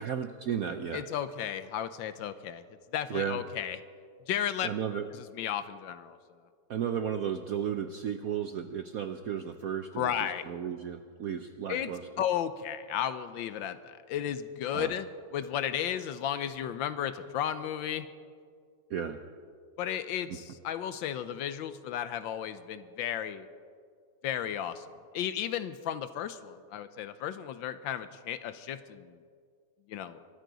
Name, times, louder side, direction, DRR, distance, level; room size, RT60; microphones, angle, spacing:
voice 1, 0.0-1.1 3.1-3.4 4.6-5.1 6.7-12.0 14.7-14.9 18.9-19.2, right 8 dB, 70° right, 7 dB, 0.8 m, -34 dB
voice 2, 0.9-2.6 2.9-3.8 4.3-4.7 5.1-6.2 9.9-10.4 11.7-11.9 12.2-15.1 15.3-18.1 19.8-23.5 24.2-29.2 29.9-30.2, left 10 dB, 75° left, 12 dB, 1.3 m, -34 dB
23.5 x 14.0 x 4.0 m, 2.1 s
omnidirectional pair, 2.2 m